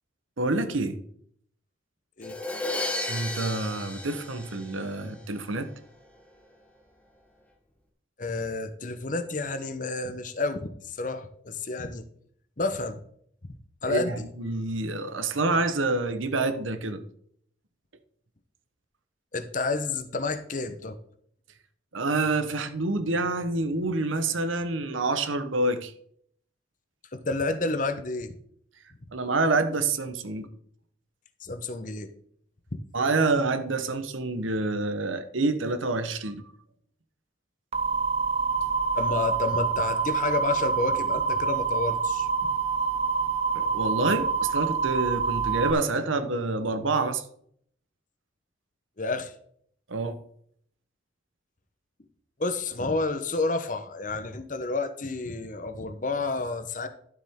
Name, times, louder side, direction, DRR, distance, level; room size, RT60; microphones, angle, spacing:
voice 1, 0.4-1.0 3.1-5.7 13.9-17.0 21.9-25.9 29.1-30.5 32.9-36.4 43.5-47.2 49.9-50.2, right 3 dB, 85° right, 1.0 m, -27 dB
Crash cymbal, 2.2-5.2, left 2 dB, 5° left, 1.0 m, -33 dB
voice 2, 8.2-12.0 12.6-13.0 13.4-13.5 13.8-14.2 19.3-21.0 27.1-28.4 31.4-32.1 32.7-32.8 38.9-42.5 49.0-49.3 52.4-56.9, left 3 dB, 40° left, 0.9 m, -30 dB
sound 1, 37.7-45.7, right 5 dB, 30° right, 0.6 m, -26 dB
12.0 x 7.4 x 3.7 m
head